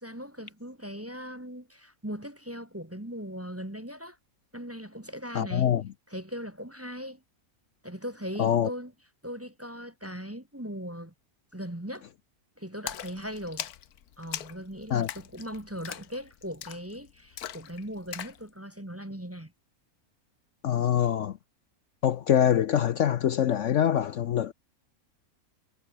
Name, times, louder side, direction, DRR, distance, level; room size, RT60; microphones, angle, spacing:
voice 1, 0.0-4.2 4.5-5.7 6.1-7.2 7.8-8.9 9.2-11.1 11.5-12.1 12.6-13.7 14.2-19.5, equal, 10° right, 1.3 m, -39 dB
voice 2, 5.3-5.8 8.4-8.7 14.9-15.1 20.6-21.4 22.0-24.5, left 10 dB, 65° left, 1.0 m, -24 dB
Splash splatter, 12.9-18.4, left 10 dB, 90° left, 1.4 m, -41 dB
omnidirectional pair, 1.5 m